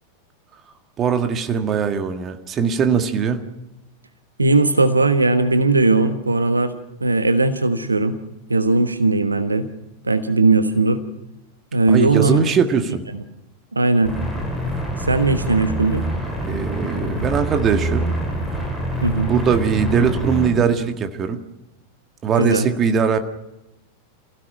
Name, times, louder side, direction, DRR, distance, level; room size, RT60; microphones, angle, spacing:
voice 1, 1.0-3.5 11.9-13.0 16.4-18.1 19.3-21.4 22.2-23.2, right 6 dB, 25° right, 7 dB, 1.8 m, -20 dB
voice 2, 4.4-8.2 8.5-9.7 10.0-11.0 11.7-12.4 13.7-14.1 15.1-16.0 19.0-19.3 22.4-22.7, right 3 dB, 80° right, 10 dB, 1.3 m, -18 dB
sound 1, 14.0-20.5, right 1 dB, 10° right, 7.2 m, -26 dB
28.5 x 16.5 x 6.3 m, 0.93 s
figure-of-eight pair, 90°, 0 cm